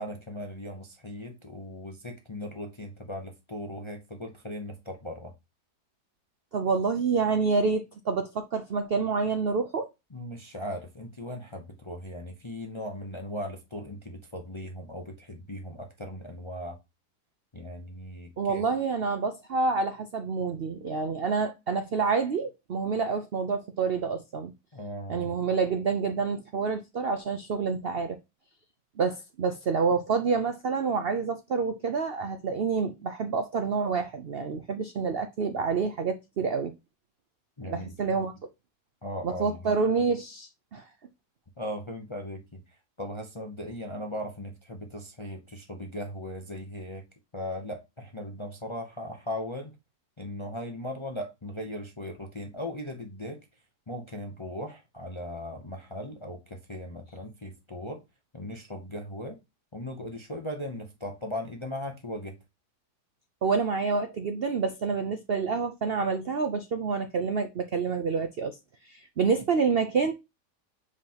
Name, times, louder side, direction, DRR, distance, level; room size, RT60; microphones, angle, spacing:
voice 1, 0.0-5.3 10.1-16.8 17.5-18.6 24.7-25.4 37.6-38.2 39.0-39.8 41.6-42.6 43.0-47.0 47.3-49.7 50.2-53.4 53.9-58.0 58.3-59.4 59.7-62.4, left 1 dB, 25° left, 0.6 m, -38 dB
voice 2, 6.5-9.9 18.4-24.5 25.1-28.2 29.0-36.7 37.6-38.3 39.2-40.8 63.4-68.6 68.9-70.1, right 5 dB, 60° right, 0.6 m, -28 dB
7.5 x 4.9 x 2.9 m
omnidirectional pair, 1.8 m